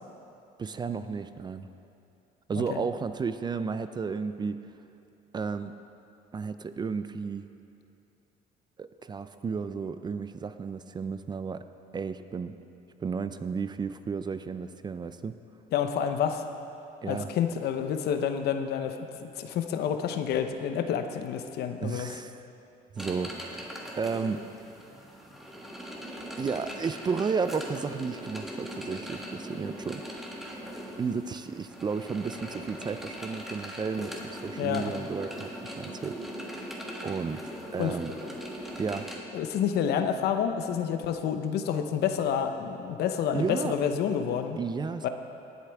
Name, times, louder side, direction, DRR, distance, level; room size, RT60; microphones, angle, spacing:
voice 1, 0.6-1.7 2.5-4.6 5.3-5.7 6.3-7.5 8.8-11.6 11.9-12.5 13.0-15.4 17.0-17.3 21.8-22.4 22.9-24.4 26.4-30.0 31.0-36.2 37.0-37.4 37.7-38.1 38.8-39.1 43.3-43.7 44.6-45.1, right 5 dB, 25° right, 11 dB, 0.4 m, -33 dB
voice 2, 15.7-16.4 17.0-22.1 34.6-34.9 37.8-37.9 39.3-44.6 45.0-45.1, left 8 dB, 70° left, 7 dB, 0.8 m, -29 dB
sound 1, 23.0-39.2, equal, ahead, 1.4 m, -40 dB
18.0 x 8.2 x 3.5 m, 2.7 s
cardioid pair, 110°, 17 cm